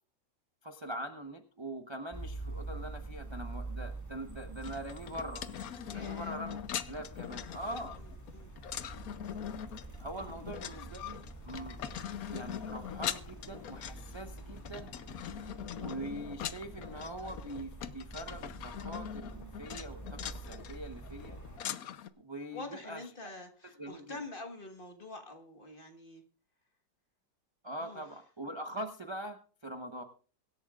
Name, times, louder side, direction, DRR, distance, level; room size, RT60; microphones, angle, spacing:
voice 1, 0.6-5.4 5.9-6.6 6.9-8.0 10.0-11.8 12.3-14.9 15.8-21.4 22.2-23.3 23.8-24.2 27.6-30.0, right 1 dB, 20° right, 5 dB, 0.8 m, -43 dB
sound 1, 2.1-21.6, right 2 dB, 10° left, 1.8 m, -46 dB
sound 2, 4.6-22.1, left 10 dB, 65° left, 1.1 m, -42 dB
voice 2, 5.9-6.4 7.6-8.5 10.1-10.4 22.5-26.2 27.8-28.0, left 2 dB, 30° left, 5 dB, 1.6 m, -47 dB
24.5 x 11.0 x 2.4 m, 0.38 s
omnidirectional pair, 1.9 m